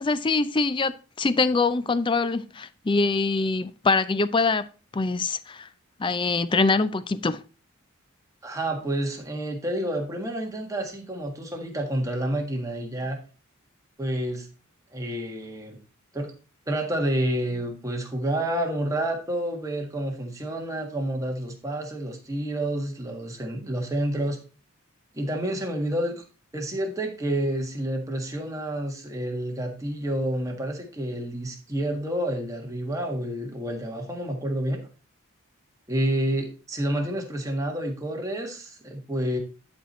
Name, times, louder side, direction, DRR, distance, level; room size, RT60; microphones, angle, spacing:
voice 1, 0.0-4.7 4.9-5.7 6.0-7.4, left 3 dB, 20° left, 0.4 m, -24 dB
voice 2, 8.4-13.2 14.0-14.5 14.9-15.8 16.1-16.3 16.7-24.4 25.1-26.2 26.5-34.8 35.9-39.4, right 1 dB, 15° right, 1.5 m, -29 dB
11.0 x 4.5 x 4.1 m
head